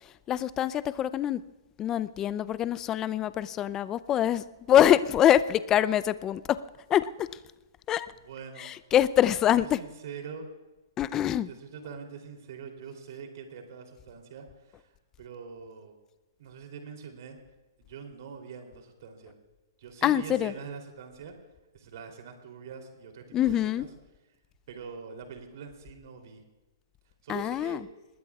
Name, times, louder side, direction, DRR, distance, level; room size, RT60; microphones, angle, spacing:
voice 1, 0.0-1.4 1.8-6.6 6.9-7.3 7.9-8.1 8.6-9.8 11.0-11.5 20.0-20.5 23.3-23.9 27.3-27.8, left 11 dB, 20° left, 16 dB, 0.5 m, -25 dB
voice 2, 8.2-8.7 9.3-10.5 11.5-15.9 16.4-17.4 17.9-19.3 19.8-21.3 21.7-23.9 24.7-26.4 27.2-27.8, right 6 dB, 60° right, 3 dB, 3.2 m, -44 dB
26.0 x 20.5 x 2.4 m, 1.1 s
hypercardioid pair, 130°, 2 cm